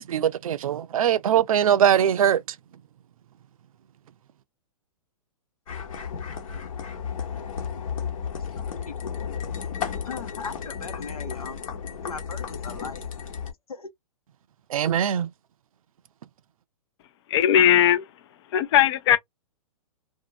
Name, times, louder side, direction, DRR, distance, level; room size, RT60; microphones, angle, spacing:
voice 1, 0.0-2.4 14.7-15.3, right 9 dB, 75° right, 0.5 m, -21 dB
sound 1, 5.7-13.5, left 7 dB, 70° left, 1.2 m, -33 dB
voice 2, 8.3-9.1 10.0-11.6 12.0-13.0 13.7-13.9, left 4 dB, 85° left, 1.2 m, -38 dB
voice 3, 17.3-18.0 18.5-19.2, left 10 dB, 50° left, 0.6 m, -18 dB
2.6 x 2.5 x 2.7 m
hypercardioid pair, 130°, 18 cm